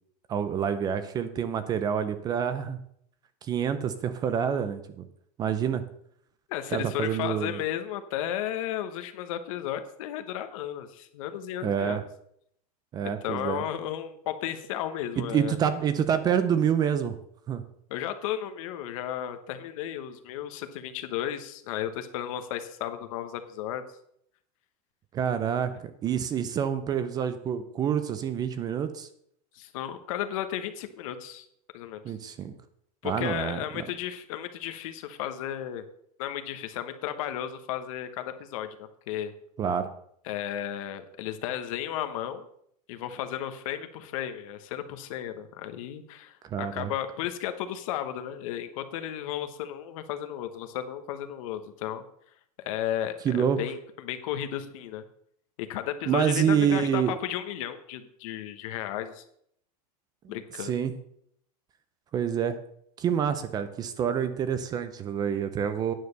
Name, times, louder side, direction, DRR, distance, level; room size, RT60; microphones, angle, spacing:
voice 1, 0.3-2.8 3.4-5.0 5.4-5.8 6.7-7.5 11.6-12.0 12.9-13.6 15.2-17.1 17.5-17.6 25.1-29.1 32.0-32.5 33.0-33.8 39.6-39.9 46.4-46.9 53.2-53.6 56.1-57.1 60.2-60.9 62.1-62.6 63.0-65.9, right 8 dB, 20° right, 11 dB, 0.5 m, -27 dB
voice 2, 6.5-12.0 13.2-15.6 17.9-23.8 29.5-31.5 31.7-32.0 33.0-35.8 36.2-39.3 40.2-42.5 42.9-52.0 52.6-53.8 54.0-55.0 55.6-59.2 60.3-60.7, left 11 dB, 60° left, 8 dB, 1.1 m, -34 dB
9.5 x 6.5 x 6.7 m, 0.70 s
supercardioid pair, 160°, 20 cm